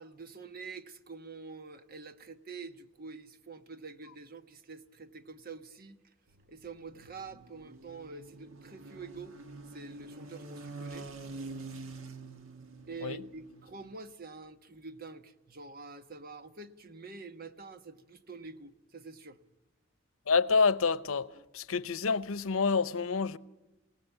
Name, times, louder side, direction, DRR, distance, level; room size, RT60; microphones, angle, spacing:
voice 1, 0.0-6.0 6.5-9.4 9.7-11.1 11.7-11.8 12.9-19.4, right 4 dB, 45° right, 1.2 m, -46 dB
sound 1, 6.3-13.9, right 3 dB, 85° right, 1.5 m, -46 dB
voice 2, 20.3-21.3 21.5-23.4, left 5 dB, 90° left, 0.8 m, -27 dB
28.0 x 18.0 x 8.1 m
head